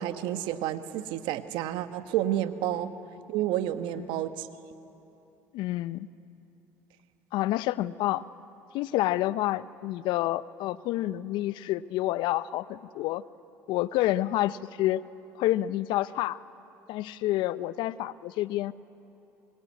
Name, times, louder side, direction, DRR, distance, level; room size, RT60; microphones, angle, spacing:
voice 1, 0.0-2.9 3.3-4.5, right 12 dB, 70° right, 10 dB, 1.3 m, -30 dB
voice 2, 5.5-6.1 7.3-8.2 8.7-13.2 13.7-15.0 15.4-16.4 16.9-18.7, left 15 dB, 65° left, 17 dB, 0.7 m, -28 dB
24.5 x 23.0 x 9.6 m, 2.9 s
hypercardioid pair, 70°, 8 cm